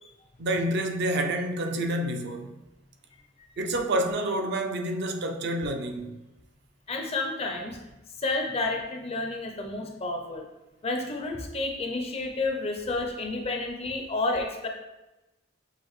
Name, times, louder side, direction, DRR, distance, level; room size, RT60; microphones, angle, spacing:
voice 1, 0.4-2.5 3.6-6.2, right 1 dB, 55° right, 0.4 m, -28 dB
voice 2, 6.9-7.8 8.2-10.5 10.8-14.7, left 2 dB, 30° left, 0.5 m, -30 dB
6.5 x 2.5 x 3.1 m
head